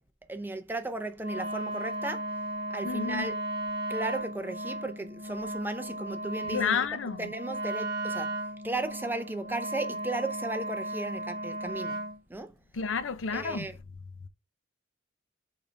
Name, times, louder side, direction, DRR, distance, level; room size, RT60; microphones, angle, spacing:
voice 1, 0.3-2.2 2.7-3.4 3.9-6.8 7.2-8.4 8.6-12.0 12.3-12.5 13.3-13.8, right 2 dB, 10° right, 0.6 m, -35 dB
Wind instrument woodwind instrument, 1.2-12.2, right 1 dB, 50° right, 1.2 m, -35 dB
voice 2, 2.8-3.3 6.5-7.3 12.7-13.7, left 6 dB, 80° left, 0.6 m, -30 dB
5.3 x 4.0 x 4.5 m
head